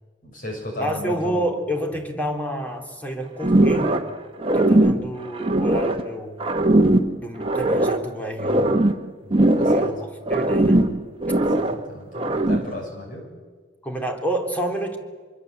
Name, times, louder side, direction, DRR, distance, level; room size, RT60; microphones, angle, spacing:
voice 1, 0.2-1.5 1.9-2.0 4.8-5.1 9.2-9.9 11.4-13.3, left 1 dB, 50° left, 1 dB, 7.0 m, -36 dB
voice 2, 0.8-4.0 4.5-6.4 7.2-8.7 9.7-10.8 13.8-15.0, equal, 10° left, 2 dB, 3.2 m, -29 dB
sound 1, 3.4-4.1 4.4-6.1 6.4-8.1 8.4-10.0 10.3-11.8 12.1-12.8, right 1 dB, 30° right, 1.3 m, -20 dB
25.5 x 24.0 x 8.1 m, 1.5 s
head